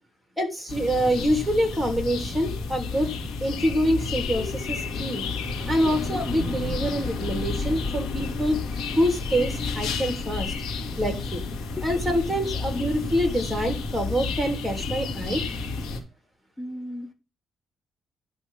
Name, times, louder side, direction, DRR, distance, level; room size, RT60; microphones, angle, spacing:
voice 1, 0.4-3.1 3.4-5.2 5.7-8.6 9.0-10.5 11.0-11.4 11.8-15.4, equal, 5° right, 3 dB, 3.2 m, -26 dB
sound 1, 0.7-16.0, left 4 dB, 75° left, 2.2 m, -31 dB
voice 2, 16.6-17.1, left 1 dB, 20° left, 5 dB, 1.1 m, -35 dB
10.5 x 3.5 x 7.1 m, 0.31 s
cardioid pair, 90°, 0 cm